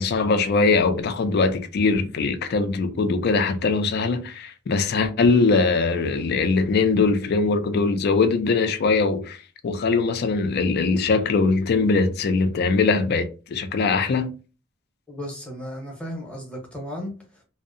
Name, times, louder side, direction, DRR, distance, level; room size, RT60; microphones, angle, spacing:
voice 1, 0.0-9.4 9.6-14.3, left 4 dB, 55° left, 0.4 m, -21 dB
voice 2, 15.1-17.4, equal, 5° left, 0.7 m, -35 dB
2.6 x 2.0 x 2.5 m
head